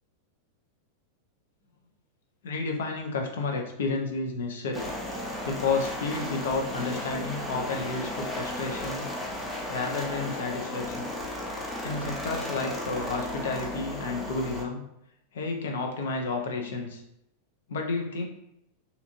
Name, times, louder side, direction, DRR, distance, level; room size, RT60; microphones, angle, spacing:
voice 1, 2.4-4.9 5.4-9.1 9.7-11.1 11.8-14.8 15.3-17.0 17.7-18.2, left 3 dB, 60° left, 2 dB, 0.5 m, -31 dB
sound 1, 4.7-14.6, left 1 dB, 5° left, 0.6 m, -35 dB
2.8 x 2.5 x 2.5 m, 0.83 s
figure-of-eight pair, 90°, 0 cm